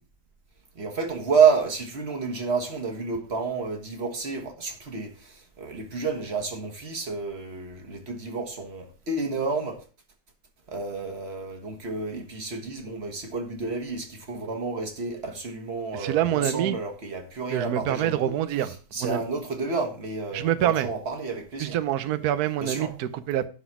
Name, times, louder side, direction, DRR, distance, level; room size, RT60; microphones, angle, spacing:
voice 1, 0.8-9.8 10.7-18.3 18.6-21.8 22.6-22.9, right 5 dB, 40° right, 1.7 m, -29 dB
voice 2, 15.9-16.8 17.5-18.7 19.0-19.2 20.3-20.9 21.6-23.4, right 11 dB, 70° right, 1.2 m, -26 dB
11.0 x 4.0 x 6.0 m
omnidirectional pair, 1.8 m